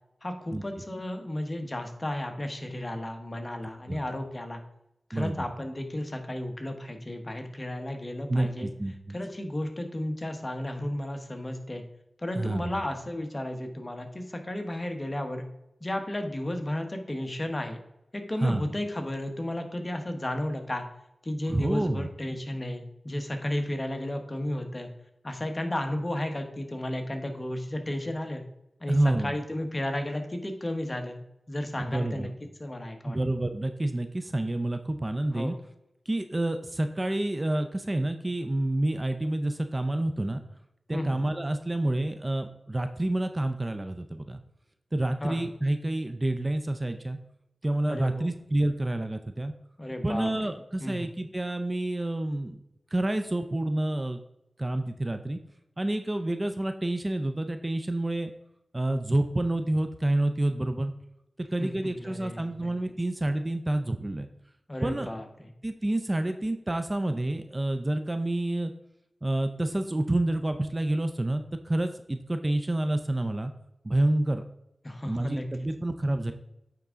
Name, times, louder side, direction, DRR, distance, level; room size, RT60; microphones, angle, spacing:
voice 1, 0.2-4.6 5.1-8.7 9.1-11.8 12.2-15.4 15.8-17.8 18.1-20.8 21.2-24.9 25.2-28.4 28.8-31.2 31.5-32.3 32.6-33.2 35.3-35.5 40.9-41.2 45.2-45.5 47.9-48.3 49.8-50.3 50.8-51.1 61.6-62.7 64.7-65.3 74.8-75.5, left 1 dB, 35° left, 5 dB, 1.1 m, -33 dB
voice 2, 5.1-5.5 8.3-9.1 12.3-12.8 18.4-18.7 21.5-22.1 28.9-29.3 31.8-32.3 33.1-35.6 36.1-40.4 40.9-44.4 44.9-47.2 47.6-49.5 50.0-52.6 52.9-54.2 54.6-55.4 55.8-58.3 58.7-60.9 61.5-64.3 64.8-65.1 65.6-68.7 69.2-73.5 73.8-74.4 75.0-76.3, right 1 dB, 30° right, 8 dB, 0.5 m, -28 dB
8.8 x 3.6 x 3.7 m, 0.84 s
cardioid pair, 45°, 0 cm